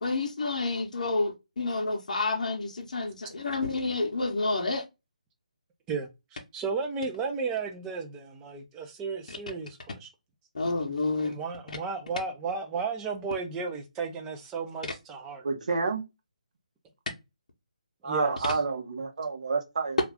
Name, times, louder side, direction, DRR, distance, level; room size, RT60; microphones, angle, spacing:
voice 1, 0.0-4.8 9.3-9.4 10.5-11.3, left 3 dB, 65° left, 0.7 m, -29 dB
voice 2, 6.5-10.1 11.2-15.4 18.0-18.6, right 5 dB, 10° right, 0.4 m, -34 dB
voice 3, 15.4-16.0 18.0-20.0, right 4 dB, 60° right, 0.8 m, -29 dB
2.4 x 2.4 x 3.3 m
figure-of-eight pair, 160°, 4 cm